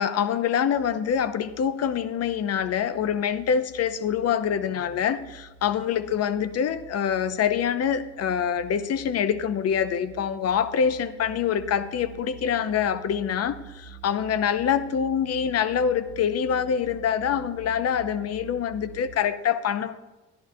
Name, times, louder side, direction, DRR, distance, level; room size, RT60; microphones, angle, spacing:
voice 1, 0.0-20.0, left 8 dB, 55° left, 12 dB, 0.7 m, -25 dB
sound 1, 0.7-19.2, right 8 dB, 90° right, 0.7 m, -47 dB
11.0 x 11.0 x 2.7 m, 1.1 s
cardioid pair, 90°, 30 cm